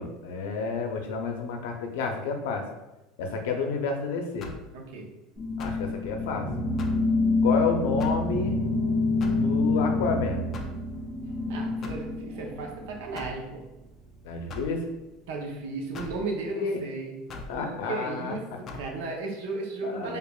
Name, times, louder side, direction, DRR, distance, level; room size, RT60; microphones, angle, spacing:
voice 1, 0.0-2.7 3.2-4.5 5.6-6.5 7.4-8.6 9.3-10.4 14.2-14.9 16.5-16.8 17.5-18.6 19.8-20.2, left 4 dB, 80° left, 4 dB, 0.5 m, -30 dB
sound 1, 4.4-4.7 5.6-5.9 6.8-7.1 8.0-8.3 9.2-9.5 10.5-10.8 11.8-12.1 13.2-13.4 14.5-14.8 15.9-16.2 17.3-17.6 18.7-18.9, left 3 dB, 25° left, 0.3 m, -40 dB
voice 2, 4.7-5.1 11.5-13.6 15.3-17.2 17.5-18.5 18.7-20.2, right 3 dB, 75° right, 1 dB, 0.7 m, -35 dB
sound 2, 5.4-13.1, left 3 dB, 5° right, 1.4 m, -27 dB
4.8 x 2.4 x 2.3 m, 0.99 s
cardioid pair, 175°, 0 cm